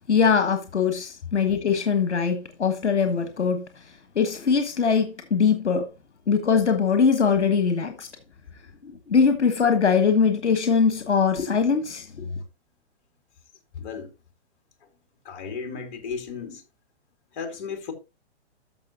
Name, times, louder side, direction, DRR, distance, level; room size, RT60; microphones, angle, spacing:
voice 1, 0.1-3.6 4.1-5.8 6.3-8.1 8.8-12.1, left 6 dB, 85° left, 1.5 m, -22 dB
voice 2, 13.7-14.1 15.2-16.6 17.3-17.9, left 5 dB, 50° left, 2.8 m, -34 dB
13.5 x 5.8 x 2.9 m
hypercardioid pair, 125°, 34 cm